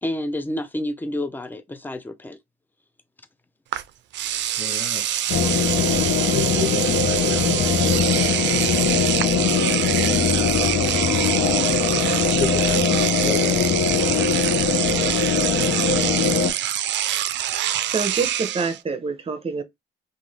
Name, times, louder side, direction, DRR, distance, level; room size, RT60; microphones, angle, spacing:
voice 1, 0.0-2.4, left 1 dB, 10° left, 0.5 m, -29 dB
Engine / Domestic sounds home sounds, 3.7-3.8 4.1-18.8, right 11 dB, 65° right, 0.4 m, -25 dB
voice 2, 4.6-8.1 8.4-8.6 10.4-15.6, left 5 dB, 85° left, 0.9 m, -36 dB
sound 1, 5.3-16.5, left 6 dB, 65° left, 0.8 m, -21 dB
voice 3, 17.9-19.6, right 4 dB, 30° right, 0.7 m, -26 dB
2.6 x 2.5 x 3.1 m
cardioid pair, 90°, 20 cm